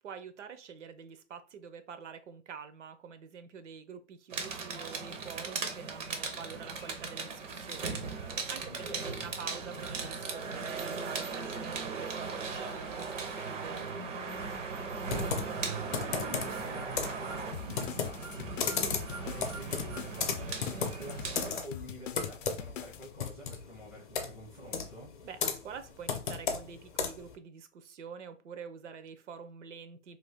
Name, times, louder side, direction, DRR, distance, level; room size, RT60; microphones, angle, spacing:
voice 1, 0.0-14.0 25.2-30.2, right 6 dB, 70° right, 10 dB, 0.6 m, -47 dB
sound 1, 4.3-21.5, right 4 dB, 85° right, 1.0 m, -38 dB
voice 2, 8.6-9.2 14.7-20.6 20.9-25.1, equal, 5° left, -10 dB, 0.4 m, -48 dB
Computer keyboard, 15.1-27.4, left 6 dB, 40° left, 0.6 m, -36 dB
sound 2, 17.5-23.1, left 9 dB, 80° left, 0.5 m, -44 dB
2.7 x 2.5 x 3.4 m, 0.34 s
hypercardioid pair, 155°, 37 cm